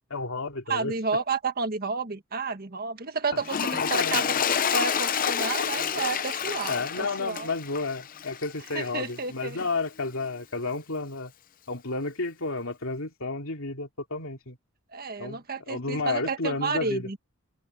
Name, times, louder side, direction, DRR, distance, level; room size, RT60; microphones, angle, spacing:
voice 1, 0.1-0.9 3.3-3.4 3.8-4.2 6.7-11.3 11.7-14.6 15.2-17.1, left 3 dB, 75° left, 3.0 m, -31 dB
voice 2, 0.7-4.4 4.7-7.5 8.7-9.6 14.9-17.2, right 4 dB, 45° right, 1.7 m, -31 dB
Toilet flush, 3.4-8.9 9.6-9.7, left 7 dB, 40° left, 0.7 m, -28 dB
head